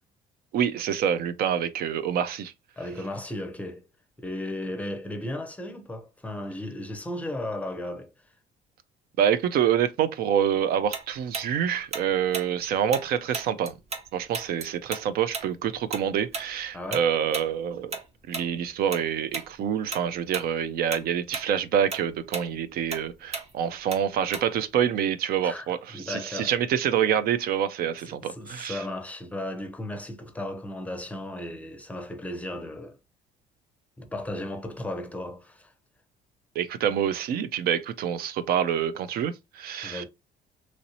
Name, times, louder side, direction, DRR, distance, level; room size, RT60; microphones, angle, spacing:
voice 1, 0.5-2.5 9.2-13.7 14.1-18.0 18.3-28.8 36.6-40.0, right 9 dB, 65° right, 0.4 m, -26 dB
voice 2, 2.8-3.9 4.2-8.1 16.7-17.1 25.4-25.7 25.9-26.5 28.1-33.0 34.0-35.7 39.8-40.0, left 1 dB, 10° left, 0.6 m, -35 dB
Tick-tock, 10.9-14.1 14.3-19.0 19.3-19.5 19.9-20.5 20.8-24.7, right 4 dB, 40° right, 0.7 m, -36 dB
3.0 x 2.6 x 2.8 m
cardioid pair, 110°, 17 cm